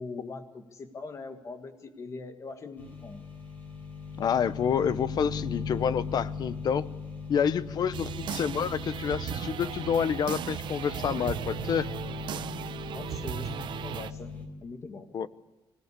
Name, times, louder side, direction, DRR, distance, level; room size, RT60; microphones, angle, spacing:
voice 1, 0.0-3.2 12.9-14.3 14.6-15.1, left 3 dB, 35° left, 7 dB, 1.8 m, -41 dB
sound 1, 2.8-14.5, left 5 dB, 20° left, 4.9 m, -39 dB
voice 2, 4.2-6.9 7.3-11.9 15.1-15.3, left 7 dB, 55° left, 15 dB, 0.8 m, -28 dB
sound 2, 7.9-14.1, right 10 dB, 65° right, 0.8 m, -36 dB
25.0 x 17.5 x 8.3 m, 1.1 s
wide cardioid pair, 175°, 8 cm